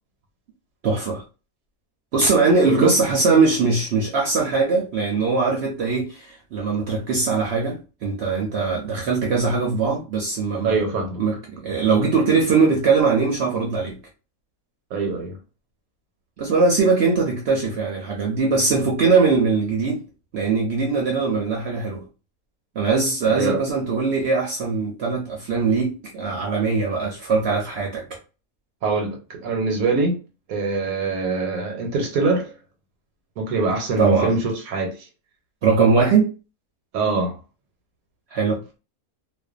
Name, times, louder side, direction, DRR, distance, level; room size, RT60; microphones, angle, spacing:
voice 1, 0.8-1.2 2.1-10.8 11.2-14.0 16.4-20.0 20.3-22.0 22.8-28.2 34.0-34.3 35.6-36.3 38.3-38.6, right 4 dB, 60° right, 0.7 m, -21 dB
voice 2, 10.6-11.2 14.9-15.4 23.2-23.6 28.8-30.2 30.5-32.5 33.4-35.1 36.9-37.4, right 3 dB, 80° right, 1.0 m, -23 dB
2.5 x 2.2 x 2.4 m
omnidirectional pair, 1.5 m